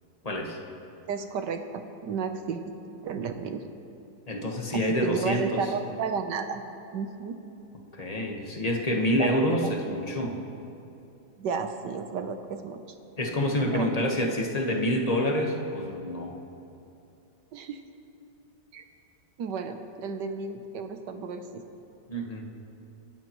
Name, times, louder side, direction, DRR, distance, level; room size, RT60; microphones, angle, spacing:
voice 1, 0.2-0.6 4.3-5.6 8.0-10.4 13.2-16.4 22.1-22.5, equal, 25° left, 0 dB, 1.3 m, -27 dB
voice 2, 1.1-2.6 3.0-3.6 4.7-6.6 6.9-7.4 9.2-9.7 11.4-12.8 13.7-13.9 17.5-17.8 18.7-18.8 19.4-21.6, right 5 dB, 70° right, 7 dB, 1.5 m, -33 dB
27.0 x 12.0 x 3.1 m, 2.7 s
omnidirectional pair, 2.0 m